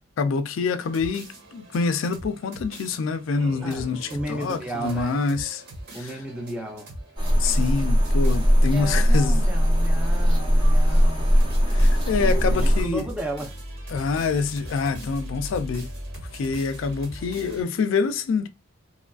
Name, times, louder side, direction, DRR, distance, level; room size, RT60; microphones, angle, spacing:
voice 1, 0.2-5.6 6.0-6.1 7.4-9.4 11.7-13.1 13.9-15.9 16.3-18.5, left 4 dB, 75° left, 0.3 m, -26 dB
sound 1, 0.8-17.6, right 1 dB, 55° right, 1.2 m, -40 dB
sound 2, 2.9-6.6, right 3 dB, 70° right, 0.6 m, -46 dB
voice 2, 3.6-5.2 5.9-7.0 8.7-11.4 12.1-13.5, right 1 dB, 5° right, 0.4 m, -33 dB
sound 3, 7.2-12.8, equal, 25° right, 0.8 m, -19 dB
2.9 x 2.4 x 2.3 m
head